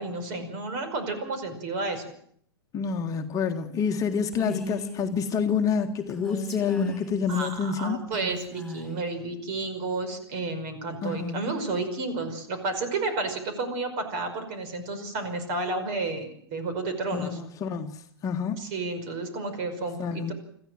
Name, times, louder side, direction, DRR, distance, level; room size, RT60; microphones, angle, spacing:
voice 1, 0.0-2.0 7.3-17.4 18.6-20.0 20.3-20.4, right 3 dB, 45° right, 5.3 m, -31 dB
voice 2, 2.7-8.0 11.0-11.5 17.1-18.6 20.0-20.3, left 6 dB, 25° left, 1.5 m, -28 dB
Female speech woman speaking, 4.3-5.0 6.1-7.6 8.1-9.0, left 1 dB, 5° left, 5.0 m, -36 dB
26.0 x 15.0 x 7.6 m
figure-of-eight pair, 105°, 14 cm